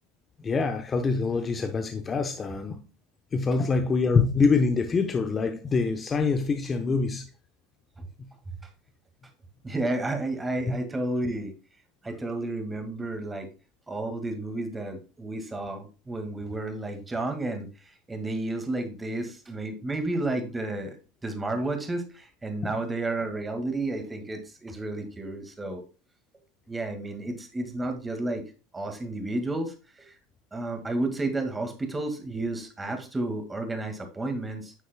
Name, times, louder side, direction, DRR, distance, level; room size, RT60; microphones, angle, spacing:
voice 1, 0.4-2.8 3.3-7.3 10.7-10.8 22.6-22.7, left 4 dB, 25° left, 0.8 m, -25 dB
voice 2, 9.6-11.5 12.0-13.5 13.9-21.0 21.2-25.8 26.7-28.4 28.7-30.2 30.5-34.7, right 2 dB, 15° right, 1.8 m, -31 dB
9.8 x 6.3 x 2.2 m
hypercardioid pair, 95°, 0 cm